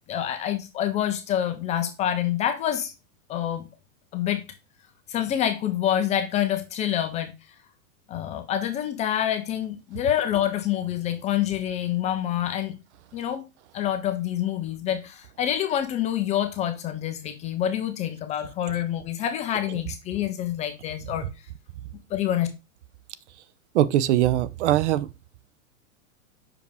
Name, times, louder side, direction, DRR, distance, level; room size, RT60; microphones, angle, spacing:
voice 1, 0.1-2.9 3.3-3.7 4.1-4.4 5.1-7.3 8.1-12.8 13.1-13.4 13.7-21.3 22.1-22.5, left 11 dB, 15° left, 0.4 m, -27 dB
voice 2, 23.7-25.1, right 13 dB, 55° right, 0.6 m, -21 dB
5.9 x 4.9 x 3.4 m
hypercardioid pair, 130°, 43 cm